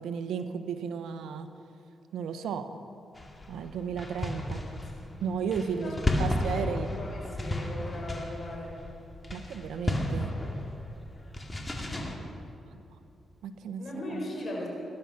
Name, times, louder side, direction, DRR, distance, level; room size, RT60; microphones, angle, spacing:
voice 1, 0.0-1.5 2.1-2.8 3.5-4.6 5.2-6.9 9.3-10.3 12.7-12.8 13.4-14.2, right 6 dB, 85° right, 9 dB, 1.0 m, -34 dB
sound 1, 3.1-12.1, left 1 dB, 20° left, 2.3 m, -34 dB
voice 2, 4.1-5.0 5.8-8.8 11.8-12.2 13.8-14.7, left 1 dB, 50° left, -1 dB, 4.5 m, -39 dB
19.5 x 11.0 x 5.9 m, 2.8 s
cardioid pair, 70°, 0 cm